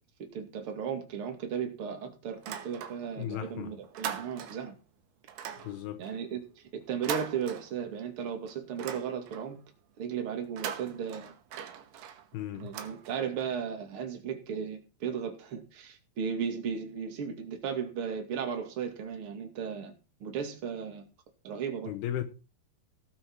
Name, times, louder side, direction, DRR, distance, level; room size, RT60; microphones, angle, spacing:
voice 1, 0.3-4.7 6.0-9.6 10.0-11.3 12.5-19.9 20.2-21.0 21.4-21.9, right 7 dB, 40° right, 2.6 m, -35 dB
sound 1, 2.3-3.3 3.6-4.8 5.3-8.1 8.5-9.6 10.4-13.5, right 9 dB, 80° right, 3.2 m, -41 dB
voice 2, 3.2-3.7 5.6-6.0 12.3-12.7 21.9-22.2, left 11 dB, 85° left, 3.0 m, -35 dB
18.0 x 6.4 x 4.6 m
omnidirectional pair, 4.5 m